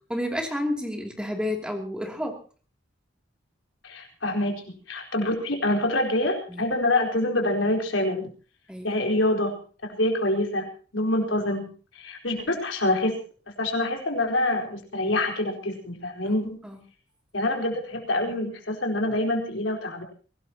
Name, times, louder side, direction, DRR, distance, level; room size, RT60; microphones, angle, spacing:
voice 1, 0.1-2.4 6.5-6.6 8.7-9.0 16.2-16.4 16.6-16.8, left 1 dB, 5° right, 2 dB, 2.9 m, -30 dB
voice 2, 3.8-8.3 8.8-10.7 10.9-13.2 13.6-16.6 17.3-20.0, left 1 dB, 85° left, 2 dB, 4.4 m, -26 dB
23.0 x 18.0 x 3.0 m, 0.39 s
head